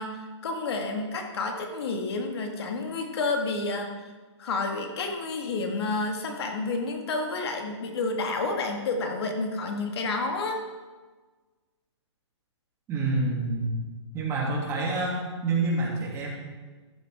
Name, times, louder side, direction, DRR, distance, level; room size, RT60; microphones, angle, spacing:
voice 1, 0.0-3.9 4.4-10.6, left 3 dB, 60° left, 3 dB, 2.0 m, -30 dB
voice 2, 12.9-13.7 14.1-16.3, right 3 dB, 20° right, -3 dB, 2.8 m, -27 dB
14.5 x 11.5 x 3.7 m, 1.3 s
hypercardioid pair, 150°, 15 cm